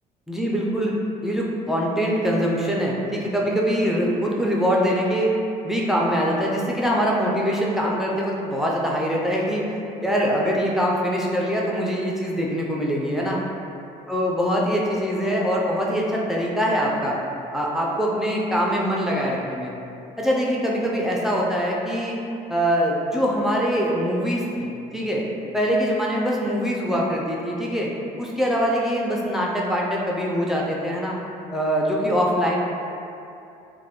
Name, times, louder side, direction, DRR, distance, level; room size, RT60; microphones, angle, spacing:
voice 1, 0.3-0.9 1.2-5.3 5.6-13.4 14.1-17.2 17.5-19.7 20.2-22.2 22.5-25.2 25.5-27.9 28.2-31.2 31.5-32.5, equal, ahead, -3 dB, 0.3 m, -23 dB
2.3 x 2.1 x 3.4 m, 2.7 s
cardioid pair, 110°, 17 cm